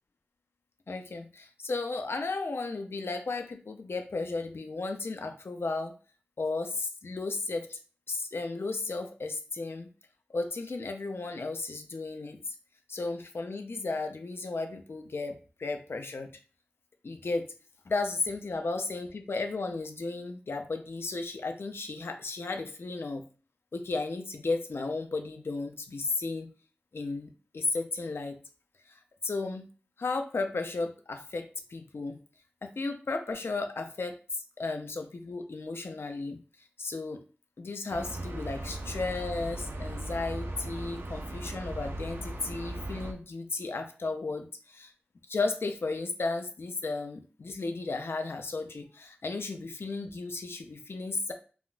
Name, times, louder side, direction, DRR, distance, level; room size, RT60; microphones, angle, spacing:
voice 1, 0.9-5.9 6.4-7.8 8.1-9.9 10.3-12.5 12.9-16.3 17.0-17.5 17.9-23.2 23.7-26.5 26.9-28.4 28.9-29.7 30.0-32.2 32.6-36.4 36.8-37.2 37.6-44.9 45.3-51.3, left 3 dB, 80° left, 6 dB, 0.4 m, -34 dB
sound 1, 37.9-43.1, right 1 dB, 70° right, 0.4 m, -38 dB
3.4 x 2.4 x 2.3 m, 0.38 s
wide cardioid pair, 65°, 4 cm